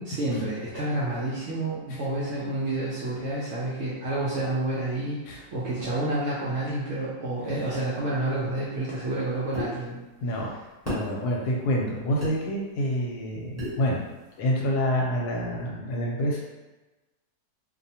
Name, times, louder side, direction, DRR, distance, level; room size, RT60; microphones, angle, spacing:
voice 1, 0.1-10.0, right 2 dB, 70° right, -8 dB, 0.7 m, -29 dB
sound 1, 9.5-9.7 10.9-11.1 12.2-12.3 13.6-13.8, equal, 10° right, 0.8 m, -31 dB
voice 2, 10.9-14.0 14.4-16.4, equal, 80° left, -2 dB, 1.1 m, -27 dB
2.6 x 2.1 x 2.7 m, 1.1 s
omnidirectional pair, 1.7 m